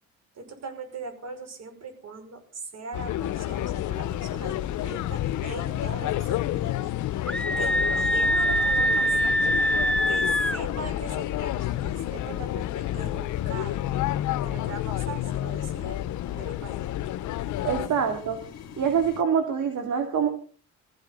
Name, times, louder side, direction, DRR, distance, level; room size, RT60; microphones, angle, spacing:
voice 1, 0.4-6.9 7.1-7.2 7.6-9.4 10.1-13.8 14.4-16.0 16.3-17.0, right 4 dB, 55° right, 7 dB, 5.3 m, -40 dB
sound 1, 2.9-17.9, left 14 dB, 75° left, 0.8 m, -30 dB
sound 2, 3.2-19.2, left 8 dB, 60° left, 2.4 m, -42 dB
Screaming, 7.3-10.6, equal, 5° left, 0.8 m, -23 dB
voice 2, 17.6-18.4 18.8-20.3, right 7 dB, 75° right, 6 dB, 2.5 m, -25 dB
22.0 x 14.5 x 3.8 m, 0.39 s
cardioid pair, 90°, 30 cm